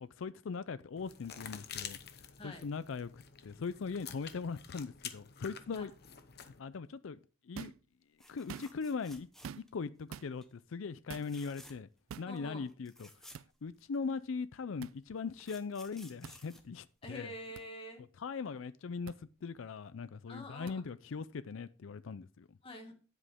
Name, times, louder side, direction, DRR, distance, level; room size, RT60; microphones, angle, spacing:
voice 1, 0.0-2.0 2.4-5.9 6.6-7.2 7.5-7.7 8.3-9.3 9.6-11.9 12.2-13.1 13.6-17.3 18.2-22.5, left 5 dB, 70° left, 0.4 m, -40 dB
sound 1, 1.0-6.6, left 8 dB, 50° left, 0.9 m, -48 dB
sound 2, 7.5-7.9 8.4-8.9 9.4-9.8 10.1-10.3 11.1-11.3 12.1-12.3 13.3-13.5 14.8-15.0 16.2-16.4 17.6-17.7 19.1-19.2 20.7-20.8, right 7 dB, 80° right, 0.4 m, -46 dB
sound 3, 8.2-9.8 10.2-10.5 11.1-12.0 12.4-12.5 12.7-14.2 15.0-17.5 19.4-19.6 19.9-20.0, equal, ahead, 1.1 m, -57 dB
voice 2, 12.3-12.6 17.0-18.1 20.3-20.8 22.6-22.9, left 1 dB, 25° left, 1.9 m, -46 dB
9.9 x 8.1 x 3.5 m
head